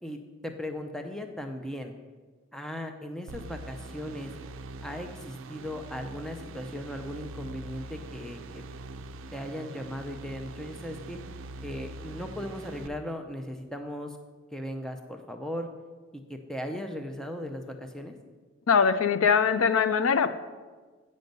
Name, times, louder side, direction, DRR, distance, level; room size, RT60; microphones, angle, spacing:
voice 1, 0.0-1.9 2.5-4.3 4.8-8.6 9.3-11.2 11.6-14.2 14.5-15.7 16.1-18.2, left 1 dB, 5° left, 4 dB, 0.4 m, -37 dB
sound 1, 3.3-12.9, right 2 dB, 65° right, 0.5 m, -43 dB
voice 2, 18.7-20.3, left 6 dB, 70° left, 12 dB, 0.4 m, -22 dB
9.2 x 5.2 x 5.3 m, 1.4 s
head